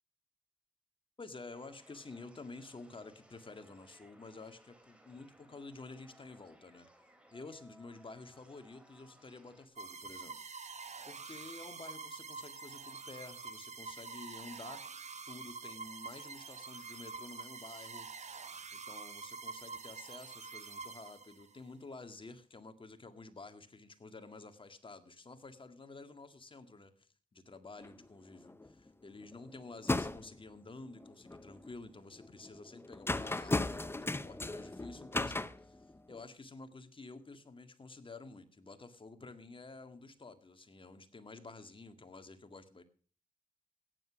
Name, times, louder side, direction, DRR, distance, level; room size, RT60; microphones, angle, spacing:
voice 1, 1.2-6.9 7.3-10.4 11.0-14.9 15.3-18.1 18.7-26.9 27.3-42.8, left 3 dB, 35° left, 9 dB, 1.9 m, -51 dB
sound 1, 1.5-9.7, equal, 10° right, 3.7 m, -63 dB
sound 2, 9.8-21.6, right 4 dB, 50° right, 1.4 m, -46 dB
sound 3, 27.8-28.0 28.3-28.9 29.2-30.4 31.0-31.7 32.2-36.2, left 2 dB, 15° left, 0.8 m, -37 dB
14.5 x 10.0 x 6.2 m, 0.43 s
cardioid pair, 60°, 15 cm